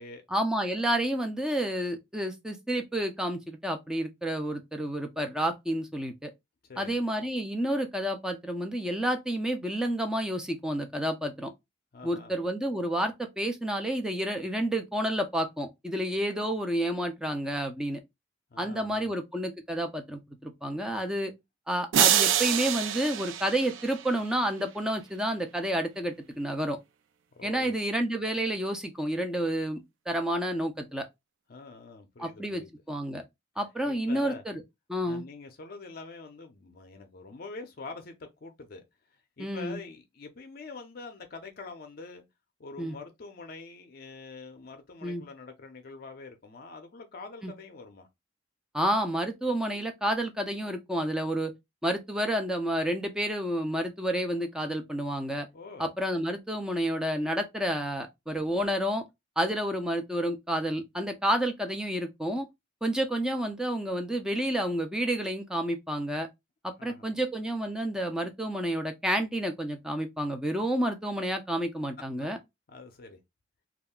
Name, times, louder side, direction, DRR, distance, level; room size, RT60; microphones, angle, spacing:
voice 1, 0.3-6.3 6.8-11.5 12.0-18.0 18.6-21.3 21.7-26.8 27.4-31.1 32.2-32.6 32.9-33.2 33.6-34.6 34.9-35.2 39.4-39.8 42.8-43.0 45.0-45.2 47.4-47.5 48.7-51.5 51.8-55.5 55.8-59.0 59.4-62.5 62.8-66.3 66.6-72.4, right 1 dB, 5° right, 0.4 m, -30 dB
voice 2, 6.6-7.0 11.9-12.3 18.5-19.1 27.4-27.8 31.5-32.7 33.8-34.4 35.0-38.8 39.4-42.2 42.6-48.1 55.5-55.9 66.8-67.1 72.7-73.2, left 3 dB, 50° left, 0.5 m, -45 dB
sound 1, 21.9-24.3, right 10 dB, 90° right, 0.3 m, -26 dB
2.3 x 2.1 x 3.5 m
head